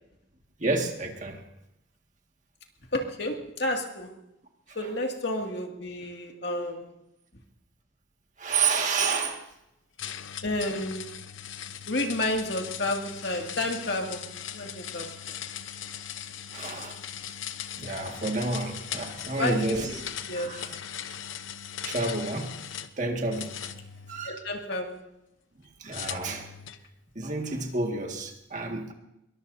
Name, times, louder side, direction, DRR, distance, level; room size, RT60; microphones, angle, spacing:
voice 1, 0.6-1.4 4.7-4.9 6.4-6.7 8.4-9.5 16.5-17.0 17.8-20.0 20.3-20.8 21.8-22.5 23.0-23.7 24.1-24.4 25.8-26.5 27.2-28.9, right 3 dB, 40° right, 2 dB, 1.9 m, -30 dB
voice 2, 2.9-4.1 4.8-6.9 10.4-11.1 11.9-15.1 19.4-20.0 20.3-20.5 24.2-25.0, left 1 dB, 55° left, 2 dB, 2.2 m, -31 dB
sound 1, 10.0-22.9 23.3-24.8 25.9-26.9, left 9 dB, 75° left, 0.8 m, -39 dB
22.5 x 21.5 x 2.7 m, 0.86 s
head